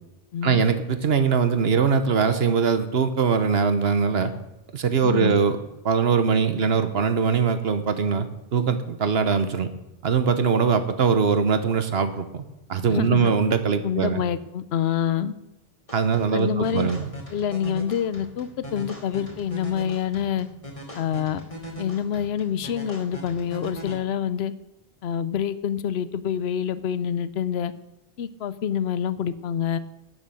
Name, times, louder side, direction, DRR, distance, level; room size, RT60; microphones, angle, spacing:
voice 1, 0.4-4.3 4.7-5.6 5.8-8.3 8.5-9.7 10.0-12.4 12.7-14.2 15.9-17.1, right 6 dB, 75° right, 10 dB, 1.2 m, -22 dB
voice 2, 5.0-5.4 12.9-13.3 13.8-15.3 16.3-16.9 17.3-20.5 20.9-21.4 21.8-24.5 25.0-27.7 28.2-29.8, left 9 dB, 80° left, 15 dB, 0.9 m, -26 dB
sound 1, 15.9-23.9, equal, 35° left, 2.9 m, -40 dB
12.0 x 7.2 x 7.7 m, 0.94 s
omnidirectional pair, 1.0 m